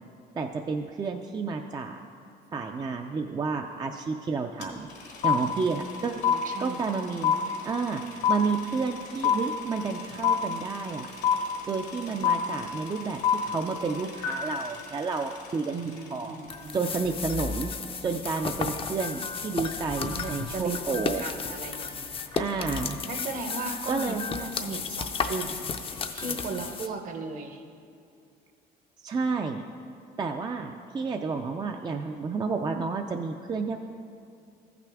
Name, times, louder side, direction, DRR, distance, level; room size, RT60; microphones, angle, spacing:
voice 1, 0.4-2.0 2.5-6.1 6.6-7.4 7.6-11.1 11.7-15.8 16.1-16.4 16.7-17.7 18.0-21.2 22.3-23.0 23.9-24.2 29.0-29.6 30.2-33.9, right 4 dB, 25° right, 4 dB, 0.4 m, -31 dB
sound 1, 4.6-4.7 4.9-16.1, left 8 dB, 75° left, 1.2 m, -27 dB
voice 2, 6.2-6.8 7.4-7.7 8.7-8.9 15.7-16.8 20.1-22.1 23.1-25.6 25.9-27.6, right 3 dB, 50° right, 5 dB, 0.9 m, -37 dB
sound 2, 16.5-26.9, left 5 dB, 35° left, 0.5 m, -33 dB
14.0 x 5.9 x 3.5 m, 2.4 s
cardioid pair, 110°, 17 cm